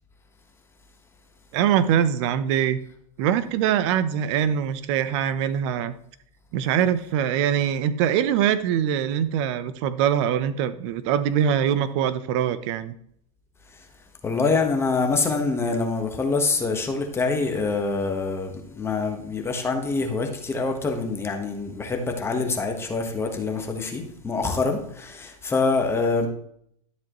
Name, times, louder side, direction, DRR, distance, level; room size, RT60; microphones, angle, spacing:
voice 1, 1.5-2.8 3.2-5.9 6.5-12.9, right 9 dB, 50° right, 0.8 m, -23 dB
voice 2, 14.2-26.3, left 3 dB, 15° left, 1.3 m, -25 dB
12.5 x 7.5 x 3.1 m
supercardioid pair, 145°, 19 cm